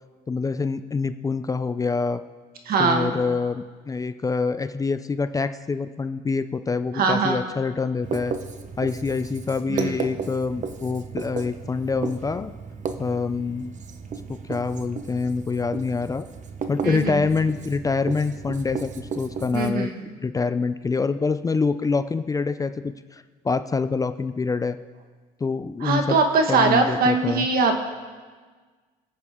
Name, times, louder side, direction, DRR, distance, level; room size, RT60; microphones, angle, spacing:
voice 1, 0.3-2.2 2.8-8.3 8.8-12.5 13.0-13.7 14.3-16.3 16.7-19.9 20.2-24.8 25.4-26.2 26.5-27.5, left 4 dB, 20° left, 11 dB, 0.4 m, -26 dB
voice 2, 2.7-3.1 7.0-7.4 9.7-9.9 16.8-17.2 19.5-20.0 25.8-27.8, right 4 dB, 60° right, 4 dB, 1.7 m, -21 dB
Writing, 8.0-19.7, right 5 dB, 45° right, 1.0 m, -34 dB
23.0 x 8.3 x 3.7 m, 1.4 s
cardioid pair, 110°, 17 cm